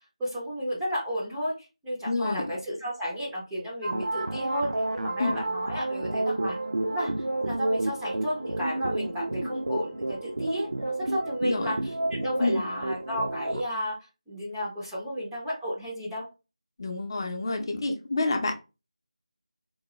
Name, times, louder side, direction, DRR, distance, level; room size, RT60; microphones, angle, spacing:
voice 1, 0.2-7.1 7.4-11.8 12.1-16.3, equal, 5° right, -8 dB, 0.5 m, -33 dB
voice 2, 2.0-2.4 5.2-5.3 11.4-11.7 12.4-12.6 16.8-18.6, left 2 dB, 40° left, 4 dB, 0.7 m, -28 dB
sound 1, 3.8-13.6, right 2 dB, 80° right, 0.5 m, -30 dB
3.7 x 2.2 x 3.0 m, 0.28 s
figure-of-eight pair, 170°, 4 cm